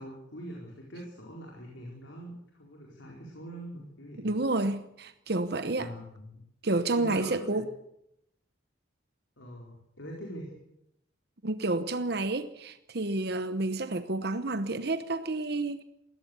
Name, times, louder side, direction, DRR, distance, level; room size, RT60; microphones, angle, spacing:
voice 1, 0.0-4.3 5.8-6.4 7.0-7.6 9.4-10.6, equal, 90° left, 4.6 m, -43 dB
voice 2, 4.2-5.9 6.6-7.6 11.4-15.8, right 2 dB, 55° right, 1.0 m, -30 dB
20.5 x 16.0 x 8.2 m
head